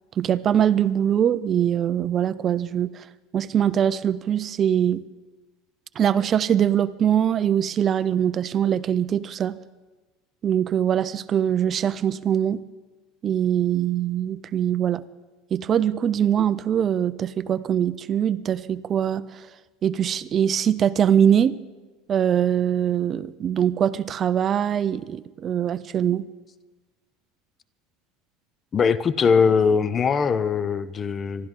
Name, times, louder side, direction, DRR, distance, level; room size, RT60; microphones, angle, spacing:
voice 1, 0.2-3.1 3.3-5.0 6.0-9.6 10.4-12.6 13.2-15.0 15.5-19.3 19.8-21.6 22.1-26.3, right 9 dB, 35° right, 17 dB, 0.4 m, -22 dB
voice 2, 28.7-31.5, left 6 dB, 25° left, 16 dB, 0.5 m, -21 dB
26.0 x 12.5 x 3.7 m, 1.2 s
supercardioid pair, 130°, 0 cm